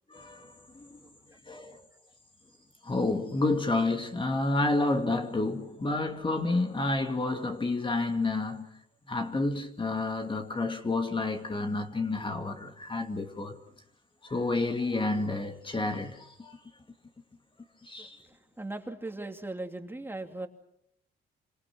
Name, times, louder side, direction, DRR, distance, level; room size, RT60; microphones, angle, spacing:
voice 1, 0.1-0.5 1.5-1.8 2.8-8.7 9.1-13.6 14.2-16.6 17.8-18.2, left 2 dB, 25° left, 2.4 m, -29 dB
voice 2, 18.6-20.5, right 2 dB, 10° right, 2.8 m, -38 dB
28.0 x 25.5 x 6.3 m
cardioid pair, 90°, 20 cm